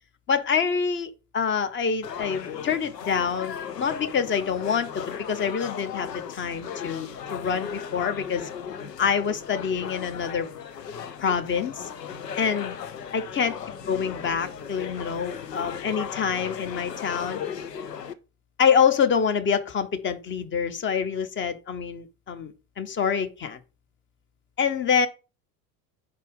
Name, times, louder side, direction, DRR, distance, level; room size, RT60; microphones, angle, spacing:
voice 1, 0.3-8.5 9.0-10.5 11.2-11.9 12.4-12.8 13.1-13.5 13.9-17.4 18.6-23.6 24.6-25.1, left 6 dB, 25° left, 1.0 m, -26 dB
sound 1, 2.0-18.1, left 7 dB, 75° left, 0.8 m, -36 dB
4.9 x 4.3 x 5.3 m
figure-of-eight pair, 75°, 49 cm